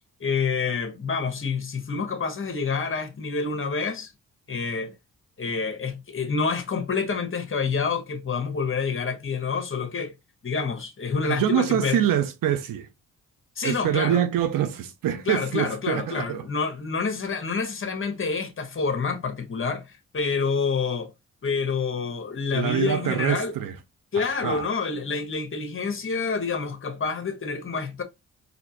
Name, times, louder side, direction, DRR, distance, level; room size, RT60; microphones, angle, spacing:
voice 1, 0.2-4.1 4.5-4.9 5.4-10.1 10.4-12.0 13.6-14.2 15.3-21.1 21.4-23.5 24.1-28.0, left 5 dB, 40° left, 1.0 m, -28 dB
voice 2, 11.3-12.9 13.6-16.4 22.5-23.8 24.2-24.6, right 10 dB, 85° right, 0.7 m, -25 dB
4.3 x 2.8 x 2.7 m
cardioid pair, 75°, 32 cm